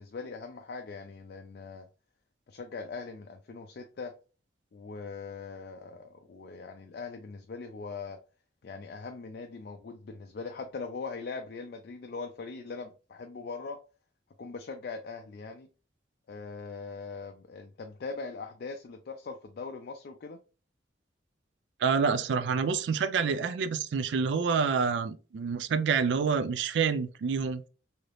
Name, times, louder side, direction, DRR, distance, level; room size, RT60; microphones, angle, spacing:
voice 1, 0.0-1.9 2.5-4.1 4.7-8.2 8.6-13.8 14.4-15.7 16.3-20.4, left 4 dB, 55° left, 0.3 m, -41 dB
voice 2, 21.8-27.7, right 5 dB, 75° right, 0.3 m, -27 dB
3.3 x 2.7 x 2.4 m
head